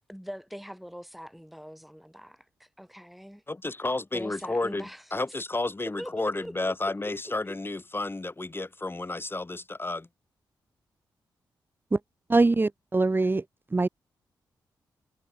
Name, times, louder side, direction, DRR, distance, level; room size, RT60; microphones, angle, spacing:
voice 1, 0.1-3.4 4.1-5.0 6.0-7.1, equal, ahead, 2.8 m, -42 dB
voice 2, 3.5-10.1, left 2 dB, 25° left, 3.4 m, -31 dB
voice 3, 12.3-13.4 13.7-13.9, right 3 dB, 25° right, 0.8 m, -23 dB
supercardioid pair, 50°, 8 cm